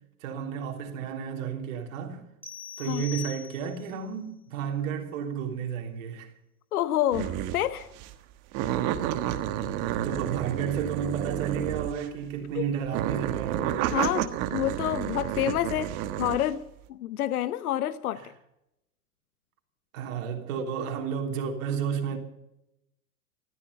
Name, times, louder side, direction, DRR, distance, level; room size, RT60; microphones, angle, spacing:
voice 1, 0.2-2.2 2.8-6.3 9.3-13.8 19.9-22.2, right 7 dB, 65° right, 3.4 m, -32 dB
sound 1, 2.4-4.0, left 9 dB, 5° left, 2.2 m, -41 dB
voice 2, 6.7-7.9 12.5-12.6 13.9-16.6 16.9-18.2, left 12 dB, 80° left, 0.9 m, -28 dB
sound 2, 7.1-7.6 8.0-8.1 8.5-12.2 12.8-16.5, right 12 dB, 40° right, 1.4 m, -30 dB
14.0 x 13.5 x 7.0 m
hypercardioid pair, 130°, 43 cm